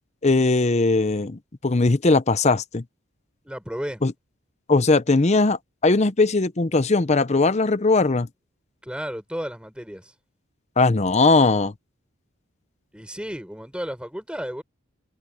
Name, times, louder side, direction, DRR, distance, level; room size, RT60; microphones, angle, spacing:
voice 1, 0.2-2.8 4.0-4.1 4.7-8.3 10.8-11.7, left 3 dB, 30° left, 0.7 m, -19 dB
voice 2, 3.4-4.0 8.8-10.1 12.9-14.6, equal, 5° right, 7.1 m, -33 dB
head